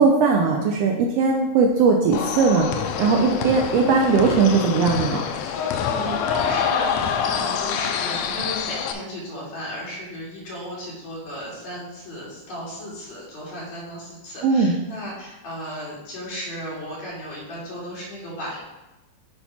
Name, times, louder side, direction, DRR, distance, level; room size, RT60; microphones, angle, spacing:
voice 1, 0.0-5.2 14.4-14.7, right 4 dB, 85° right, 2 dB, 1.4 m, -19 dB
sound 1, 2.1-8.9, left 7 dB, 80° left, 1.6 m, -26 dB
voice 2, 5.5-18.6, equal, 65° left, -6 dB, 3.4 m, -35 dB
8.6 x 3.5 x 5.6 m, 1.0 s
omnidirectional pair, 3.5 m